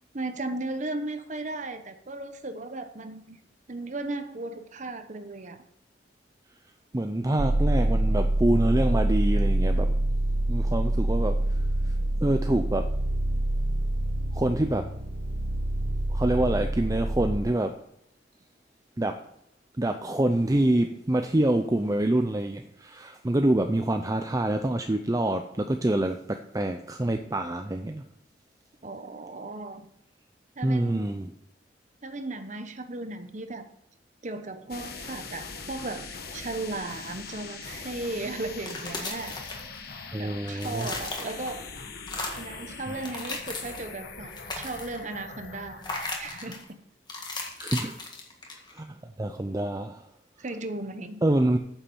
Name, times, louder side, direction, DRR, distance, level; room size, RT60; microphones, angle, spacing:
voice 1, 0.1-3.4 3.7-5.6 28.8-29.8 30.6-31.2 32.0-33.7 34.2-39.4 40.2-41.7 42.3-46.7 50.4-51.2, right 2 dB, 40° right, 8 dB, 1.0 m, -36 dB
voice 2, 6.9-10.0 10.5-11.5 11.9-12.0 12.2-12.9 14.3-14.9 16.1-17.8 19.0-19.2 19.8-28.0 30.6-31.3 40.1-40.9 42.9-43.0 47.6-48.0 48.7-50.0 51.2-51.6, right 1 dB, 20° right, 6 dB, 0.5 m, -26 dB
sound 1, 7.4-17.4, right 1 dB, 80° right, 1.1 m, -26 dB
sound 2, 34.7-46.6, left 4 dB, 55° left, 1.4 m, -42 dB
sound 3, 38.5-40.1 40.4-41.6 42.0-42.5 42.9-43.9 44.2-45.1 45.8-46.6 47.1-48.8, left 3 dB, 25° left, 1.8 m, -36 dB
9.0 x 7.3 x 6.9 m, 0.76 s
head